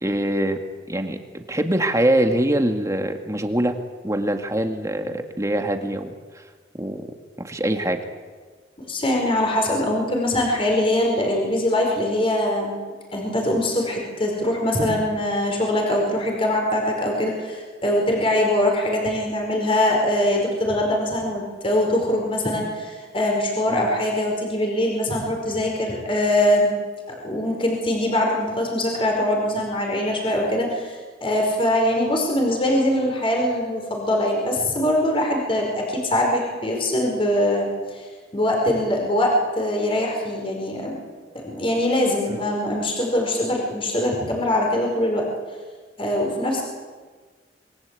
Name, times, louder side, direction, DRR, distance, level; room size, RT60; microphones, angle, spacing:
voice 1, 0.0-0.6 0.9-3.7 4.0-6.4 6.7-7.1 7.4-8.0 23.7-23.9, right 1 dB, 15° right, 5 dB, 2.0 m, -23 dB
voice 2, 8.9-12.8 13.1-26.7 27.2-38.1 38.3-41.0 41.3-45.3 46.0-46.6, left 1 dB, 30° left, 0 dB, 5.2 m, -22 dB
27.0 x 22.0 x 8.4 m, 1.5 s
head